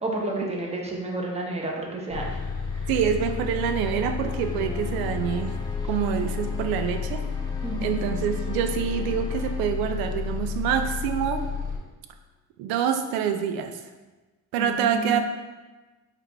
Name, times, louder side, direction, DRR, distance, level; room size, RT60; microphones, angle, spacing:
voice 1, 0.0-2.4 2.7-2.9 4.5-4.7 7.6-8.0 14.6-15.2, right 2 dB, 15° right, -1 dB, 0.8 m, -31 dB
Bus, 2.1-11.8, left 5 dB, 60° left, 0.9 m, -31 dB
voice 2, 2.9-5.6 5.9-7.2 7.8-11.5 12.6-13.8 14.5-15.2, right 8 dB, 85° right, 7 dB, 0.5 m, -26 dB
sound 1, 4.2-9.6, left 3 dB, 10° left, 0.5 m, -40 dB
4.7 x 2.5 x 3.4 m, 1.2 s
cardioid pair, 95°, 36 cm